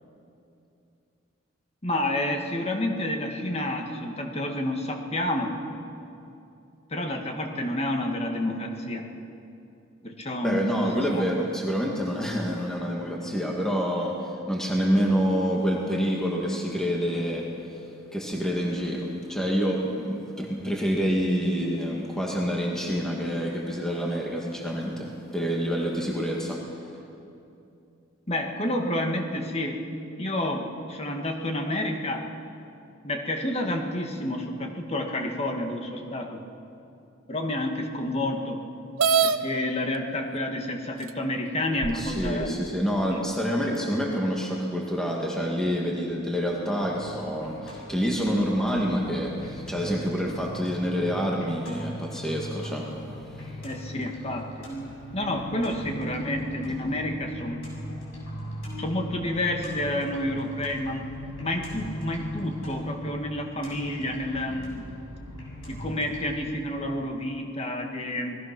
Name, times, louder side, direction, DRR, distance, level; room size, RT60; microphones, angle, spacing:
voice 1, 1.8-5.6 6.9-9.1 10.0-11.2 28.3-29.8 30.2-32.3 33.0-36.4 37.3-38.6 39.2-42.6 43.1-43.2 53.6-54.7 55.1-57.6 58.8-61.1 61.4-64.8 65.7-68.4, left 1 dB, 30° left, 3 dB, 1.8 m, -29 dB
voice 2, 10.4-27.0 41.9-53.5 56.7-56.8, equal, 5° left, -2 dB, 2.0 m, -27 dB
sound 1, 39.0-39.4 40.4-40.5 41.1-41.2 41.8-42.5, right 6 dB, 85° right, 0.8 m, -23 dB
sound 2, 46.8-66.2, equal, 80° left, 6.7 m, -39 dB
27.0 x 20.0 x 6.0 m, 2.7 s
head